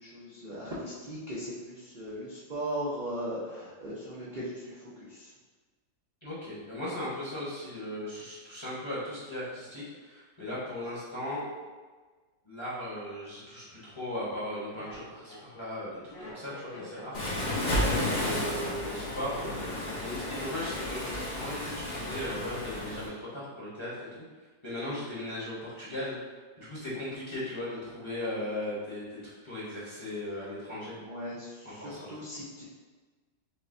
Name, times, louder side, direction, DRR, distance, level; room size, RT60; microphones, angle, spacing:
voice 1, 0.0-5.3 24.8-25.0 30.9-32.6, equal, 55° right, -8 dB, 0.5 m, -38 dB
voice 2, 6.2-11.5 12.4-21.1 21.4-24.1 24.6-26.2 26.6-30.9 31.6-32.1, left 1 dB, 20° left, -9 dB, 0.8 m, -37 dB
Laughter, 13.6-13.7 14.4-21.0 21.3-21.8, left 1 dB, 80° left, 2.1 m, -46 dB
Waves surf, 17.1-23.1, left 1 dB, 50° left, 0.5 m, -32 dB
6.6 x 2.2 x 2.6 m, 1.4 s
omnidirectional pair, 1.9 m